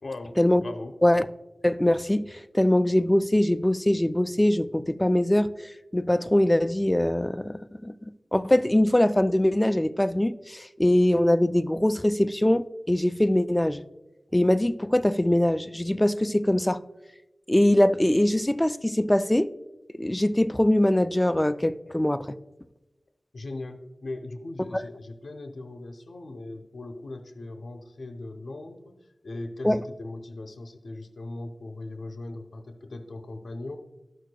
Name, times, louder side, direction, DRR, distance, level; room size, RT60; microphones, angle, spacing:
voice 1, 0.0-1.0 23.3-33.8, left 2 dB, 80° left, 0.6 m, -39 dB
voice 2, 1.6-5.5 5.9-7.9 8.3-13.8 14.3-16.8 17.5-19.5 20.0-22.3 24.7-24.8 29.6-29.8, left 1 dB, 15° left, 0.3 m, -22 dB
12.5 x 6.4 x 2.2 m
wide cardioid pair, 60°, 0 cm